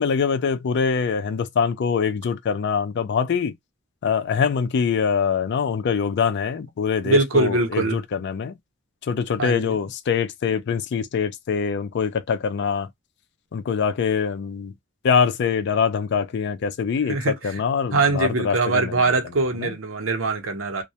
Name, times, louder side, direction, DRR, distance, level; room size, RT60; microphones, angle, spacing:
voice 1, 0.0-3.5 4.0-8.5 9.1-12.9 13.5-14.7 15.0-19.1 19.6-19.7, left 6 dB, 60° left, 0.4 m, -24 dB
voice 2, 7.0-8.0 9.4-9.8 17.1-17.6 17.9-20.8, right 3 dB, 85° right, 0.7 m, -22 dB
2.2 x 2.0 x 2.7 m
head